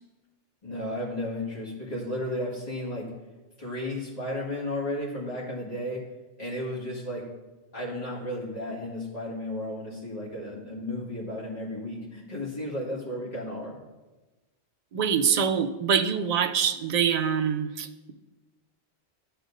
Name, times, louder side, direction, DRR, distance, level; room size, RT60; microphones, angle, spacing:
voice 1, 0.6-3.1 3.6-6.1 6.4-7.3 7.7-13.8, left 1 dB, 35° left, -6 dB, 2.0 m, -33 dB
voice 2, 14.9-18.1, right 7 dB, 55° right, 6 dB, 0.4 m, -25 dB
12.0 x 4.9 x 2.6 m, 1.1 s
omnidirectional pair, 1.1 m